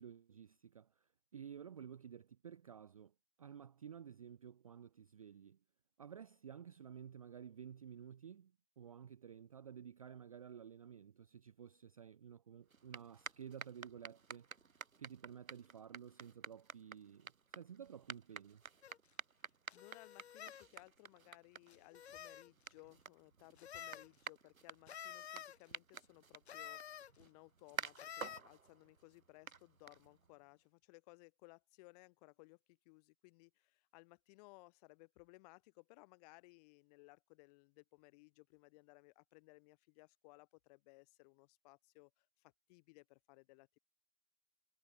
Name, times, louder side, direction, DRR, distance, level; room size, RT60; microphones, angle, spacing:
voice 1, 0.0-3.1 3.4-5.6 6.0-14.5 15.0-18.6, right 8 dB, 25° right, 0.5 m, -53 dB
sound 1, 12.7-30.4, right 5 dB, 70° right, 2.9 m, -52 dB
sound 2, 18.8-19.0 19.7-20.7 21.7-22.5 23.6-24.1 24.9-25.6 26.5-27.1 28.0-28.4, left 9 dB, 50° left, 0.5 m, -50 dB
voice 2, 19.4-43.8, left 26 dB, 25° left, 4.3 m, -62 dB
figure-of-eight pair, 135°, 43 cm